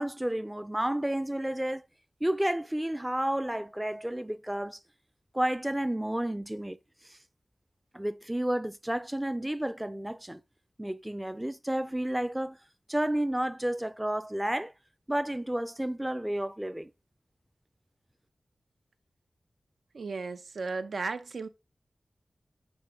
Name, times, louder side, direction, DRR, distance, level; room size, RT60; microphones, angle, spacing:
voice 1, 0.0-1.8 2.2-4.8 5.3-6.8 7.1-7.2 7.9-10.4 10.8-12.6 12.9-14.7 15.1-16.9, right 1 dB, 10° right, 0.5 m, -31 dB
voice 2, 19.9-21.5, right 4 dB, 85° right, 0.8 m, -35 dB
10.5 x 4.9 x 3.5 m
wide cardioid pair, 105°, 0 cm